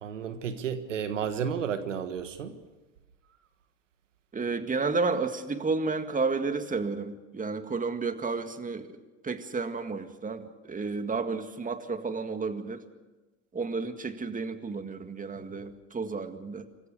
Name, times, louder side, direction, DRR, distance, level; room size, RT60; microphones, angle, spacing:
voice 1, 0.0-2.6, right 7 dB, 90° right, 10 dB, 1.6 m, -32 dB
voice 2, 4.3-9.0 9.2-12.8 13.5-16.7, right 4 dB, 20° right, 8 dB, 2.0 m, -31 dB
25.5 x 14.5 x 7.0 m, 1.2 s
hypercardioid pair, 75°, 36 cm